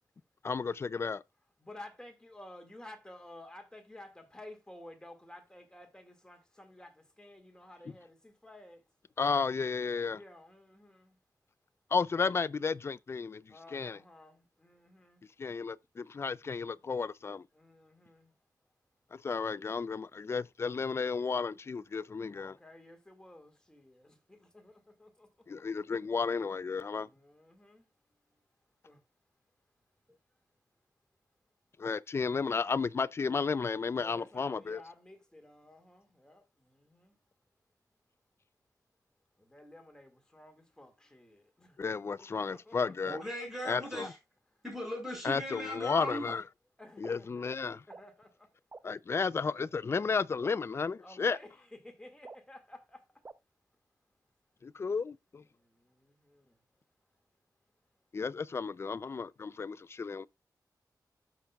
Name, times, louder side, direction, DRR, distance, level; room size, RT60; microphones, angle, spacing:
voice 1, 0.4-1.2 9.2-10.2 11.9-13.4 13.7-14.0 15.4-17.4 19.1-22.6 25.5-27.1 31.8-34.8 41.8-43.2 43.7-43.8 45.2-46.4 47.0-47.8 48.8-51.4 54.6-55.4 58.1-60.3, left 5 dB, 35° left, 0.3 m, -33 dB
voice 2, 1.6-8.8 10.1-11.2 12.2-12.3 13.5-15.3 17.5-18.4 22.0-25.7 26.9-27.9 28.3-28.5 28.9-29.0 33.9-37.2 39.4-43.3 44.0-44.1 44.5-44.6 46.8-47.5 47.9-48.6 51.0-53.2 55.5-56.6, left 1 dB, 10° left, 1.9 m, -53 dB
voice 3, 43.0-44.2 44.6-46.3, left 1 dB, 5° right, 5.8 m, -38 dB
sound 1, 46.3-46.4 47.0-47.1 47.9-48.0 48.7-48.8 49.6-49.7 50.4-50.5 51.3-51.4 52.2-52.4 53.2-53.3, right 3 dB, 30° right, 0.5 m, -47 dB
14.0 x 5.8 x 2.3 m
wide cardioid pair, 120°, 7 cm